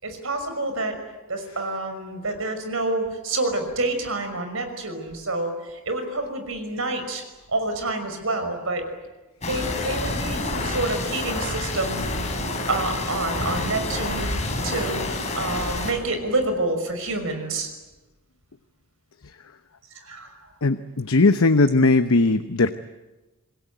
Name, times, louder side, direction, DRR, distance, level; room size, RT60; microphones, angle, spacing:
voice 1, 0.0-1.0 1.3-7.2 7.5-8.8 9.4-12.1 12.7-14.3 14.6-15.0 15.4-17.7 19.9-20.4, right 2 dB, 70° right, 7 dB, 5.8 m, -28 dB
sound 1, 9.4-15.9, left 2 dB, 30° left, 5.5 m, -28 dB
voice 2, 20.6-22.7, left 3 dB, 75° left, 10 dB, 0.9 m, -18 dB
27.5 x 21.0 x 9.4 m, 1.1 s
head